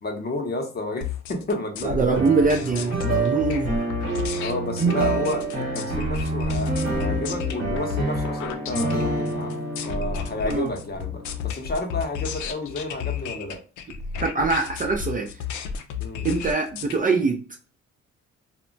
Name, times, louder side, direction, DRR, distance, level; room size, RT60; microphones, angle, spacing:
voice 1, 0.0-2.3 4.4-9.5 9.8-13.6 16.0-16.3, left 2 dB, 30° left, 0.7 m, -31 dB
sound 1, 1.0-17.0, left 7 dB, 80° left, 0.5 m, -32 dB
voice 2, 1.8-3.8 10.5-10.7 14.2-15.3 16.2-17.4, right 4 dB, 30° right, 0.4 m, -23 dB
sound 2, 2.2-12.1, right 3 dB, 45° right, 1.2 m, -28 dB
2.1 x 2.1 x 3.8 m
cardioid pair, 90°, 30 cm